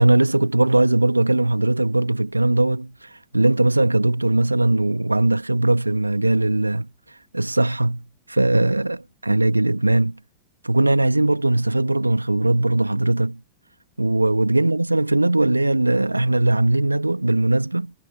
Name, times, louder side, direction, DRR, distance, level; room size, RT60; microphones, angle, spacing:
voice 1, 0.0-6.9 7.3-10.2 10.6-13.4 14.0-17.9, right 2 dB, 85° right, 2.5 m, -20 dB
figure-of-eight pair, 90°, 0 cm